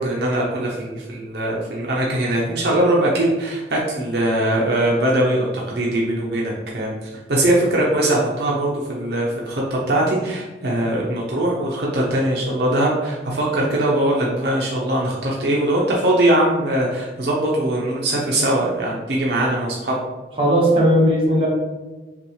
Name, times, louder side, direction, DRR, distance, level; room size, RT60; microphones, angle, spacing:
voice 1, 0.0-6.9 7.3-20.0, right 1 dB, 65° right, -4 dB, 0.7 m, -21 dB
voice 2, 20.4-21.5, equal, 30° right, -5 dB, 1.2 m, -16 dB
5.7 x 2.4 x 3.1 m, 1.2 s
head